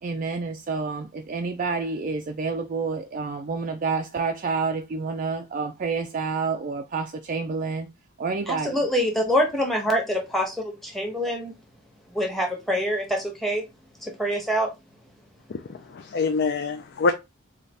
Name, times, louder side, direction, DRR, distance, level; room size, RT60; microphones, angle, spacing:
voice 1, 0.0-7.9 8.2-8.9, right 4 dB, 40° right, 0.3 m, -29 dB
voice 2, 8.5-11.5 12.1-13.6 14.0-14.7, equal, ahead, 0.9 m, -25 dB
voice 3, 15.9-17.1, left 4 dB, 55° left, 0.4 m, -25 dB
4.0 x 2.3 x 3.2 m
head